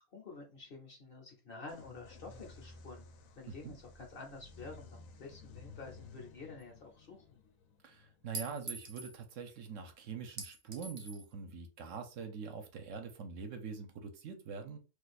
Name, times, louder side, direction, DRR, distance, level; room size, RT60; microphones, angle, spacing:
voice 1, 0.1-3.1 3.4-7.4, left 3 dB, 50° left, 2 dB, 0.8 m, -50 dB
sound 1, 1.7-9.2, left 3 dB, 90° left, 1.0 m, -55 dB
Chink clink, 6.6-6.7 8.3-9.2 10.4-11.3, right 2 dB, 35° right, 0.5 m, -44 dB
voice 2, 7.8-14.8, right 5 dB, 70° right, 6 dB, 1.0 m, -44 dB
2.6 x 2.3 x 4.0 m, 0.32 s
omnidirectional pair, 1.4 m